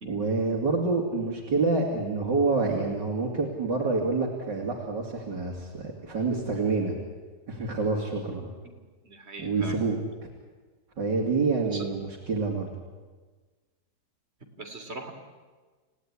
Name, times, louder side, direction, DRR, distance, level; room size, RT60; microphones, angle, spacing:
voice 1, 0.1-6.9 7.5-8.5 9.4-10.3 11.0-12.7, right 3 dB, 75° right, -2 dB, 3.5 m, -27 dB
voice 2, 9.0-9.8 11.7-11.8 14.6-15.1, right 3 dB, 35° right, 4 dB, 3.3 m, -40 dB
29.0 x 17.0 x 9.9 m, 1.4 s
omnidirectional pair, 1.9 m